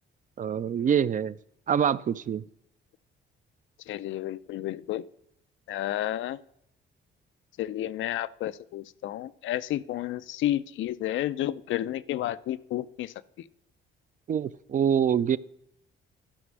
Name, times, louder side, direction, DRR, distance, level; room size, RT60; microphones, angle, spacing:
voice 1, 0.4-1.3 1.7-2.4 14.3-15.4, right 8 dB, 40° right, 17 dB, 0.4 m, -25 dB
voice 2, 3.9-5.0 5.7-6.4 7.6-13.1, left 13 dB, 75° left, 15 dB, 0.5 m, -31 dB
11.5 x 5.1 x 6.2 m, 0.74 s
cardioid pair, 90°, 20 cm